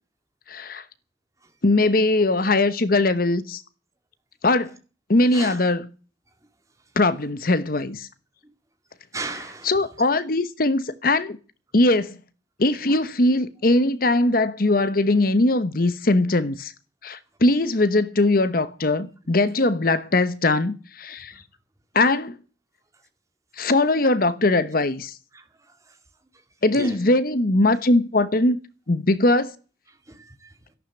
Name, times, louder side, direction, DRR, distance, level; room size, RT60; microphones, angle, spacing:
voice 1, 0.5-0.8 1.6-3.6 4.4-4.7 5.1-5.9 7.0-8.1 9.3-11.4 11.7-12.2 12.6-16.7 17.0-21.3 21.9-22.4 23.6-25.1 26.6-28.6 28.9-29.5, left 2 dB, 50° left, 1.0 m, -21 dB
voice 2, 5.2-5.6 9.1-9.9 12.9-13.0 23.6-23.7 25.3-26.0 26.7-27.0 29.9-30.6, right 2 dB, 20° right, 2.2 m, -37 dB
13.5 x 11.5 x 7.9 m
head